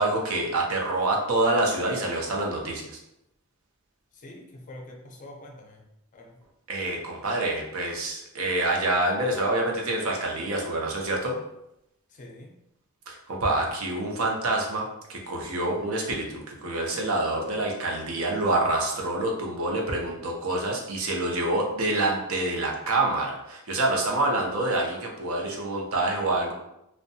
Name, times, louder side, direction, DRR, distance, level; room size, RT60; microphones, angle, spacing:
voice 1, 0.0-2.9 6.7-11.4 13.1-26.5, right 2 dB, 70° right, 0 dB, 0.6 m, -27 dB
voice 2, 4.1-5.8 6.1-6.4 12.1-12.5, left 1 dB, 35° left, 1 dB, 0.5 m, -45 dB
2.6 x 2.1 x 2.6 m, 0.83 s
head